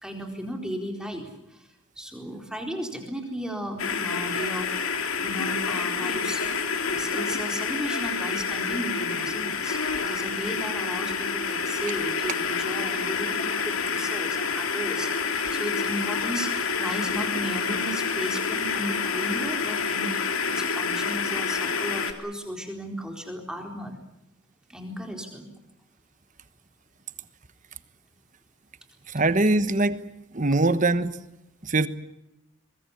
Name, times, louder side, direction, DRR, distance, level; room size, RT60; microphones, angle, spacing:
voice 1, 0.0-1.7 2.0-6.4 6.9-23.9 24.7-25.5, equal, 5° right, 4.2 m, -35 dB
sound 1, 3.8-22.1, left 5 dB, 85° left, 2.7 m, -28 dB
voice 2, 29.1-30.0 30.3-31.1 31.6-31.9, right 2 dB, 35° right, 1.2 m, -22 dB
23.5 x 22.0 x 8.4 m
head